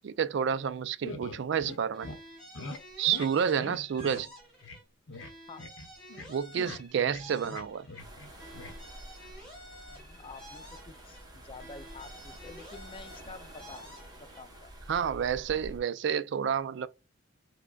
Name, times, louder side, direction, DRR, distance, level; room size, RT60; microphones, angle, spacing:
voice 1, 0.0-2.1 3.0-4.3 6.3-7.9 14.9-16.9, right 7 dB, 60° right, 0.3 m, -29 dB
sound 1, 1.0-2.2 2.5-2.8 3.1-3.3 3.6-4.2 4.6-4.8 5.1-5.3 5.6-6.3 6.5-8.3 8.5-8.7, left 2 dB, 65° left, 0.7 m, -42 dB
sound 2, 1.9-4.8 5.1-8.0 8.3-11.2 11.5-14.4, equal, 5° left, 2.0 m, -51 dB
sound 3, 8.0-15.8, right 1 dB, 20° right, 0.9 m, -49 dB
voice 2, 9.9-13.8 14.2-14.7, left 3 dB, 25° left, 0.3 m, -49 dB
4.8 x 2.2 x 2.2 m
head